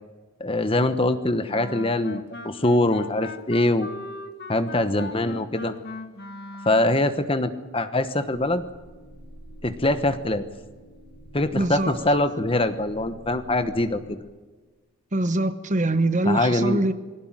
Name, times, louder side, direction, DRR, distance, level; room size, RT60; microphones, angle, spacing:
voice 1, 0.4-3.9 4.5-5.7 6.6-8.6 9.6-10.5 11.3-14.2 16.2-16.8, left 1 dB, 25° left, 10 dB, 1.1 m, -23 dB
Wind instrument woodwind instrument, 1.5-7.1, left 2 dB, 45° left, 1.8 m, -39 dB
sound 1, 8.3-14.1, equal, 90° right, 5.8 m, -47 dB
voice 2, 11.5-12.2 15.1-16.9, right 2 dB, 35° right, 11 dB, 1.1 m, -24 dB
21.0 x 18.0 x 9.0 m, 1.3 s
head